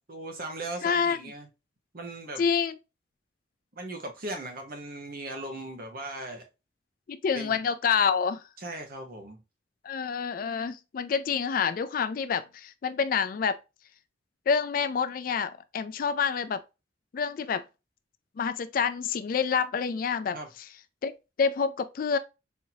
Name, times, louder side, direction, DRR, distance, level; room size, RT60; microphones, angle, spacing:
voice 1, 0.1-1.5 1.9-2.4 3.7-6.4 7.3-7.6 8.6-9.4 20.3-20.5, right 2 dB, 50° right, 0.9 m, -38 dB
voice 2, 0.8-1.2 2.4-2.8 7.1-8.4 9.8-13.6 14.5-16.6 17.1-17.6 18.4-20.4 21.0-21.1 21.4-22.2, left 6 dB, 50° left, 0.3 m, -27 dB
4.2 x 2.7 x 2.7 m
head